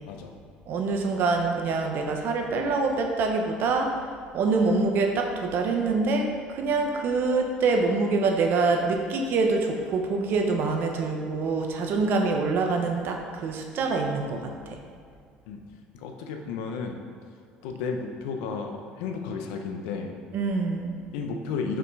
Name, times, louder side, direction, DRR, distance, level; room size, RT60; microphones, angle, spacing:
voice 1, 0.0-0.4 15.5-15.6 15.9-17.0 17.6-20.2 21.1-21.8, left 5 dB, 80° left, 4 dB, 0.8 m, -33 dB
voice 2, 0.7-3.9 4.3-14.8 20.3-21.0, right 3 dB, 60° right, 3 dB, 1.0 m, -25 dB
5.8 x 5.0 x 4.8 m, 2.2 s
supercardioid pair, 80°, 4 cm